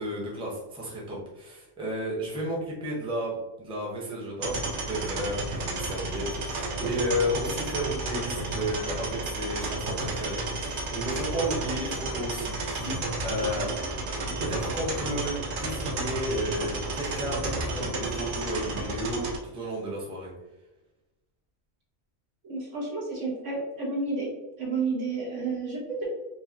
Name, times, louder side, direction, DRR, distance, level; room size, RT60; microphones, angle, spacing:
voice 1, 0.0-13.7 14.4-20.3, equal, 5° right, -3 dB, 0.7 m, -33 dB
sound 1, 4.4-19.4, right 2 dB, 55° right, 0.6 m, -32 dB
voice 2, 22.4-24.3 24.6-26.0, right 3 dB, 75° right, -5 dB, 1.6 m, -31 dB
4.8 x 2.4 x 2.8 m, 0.98 s
omnidirectional pair, 1.3 m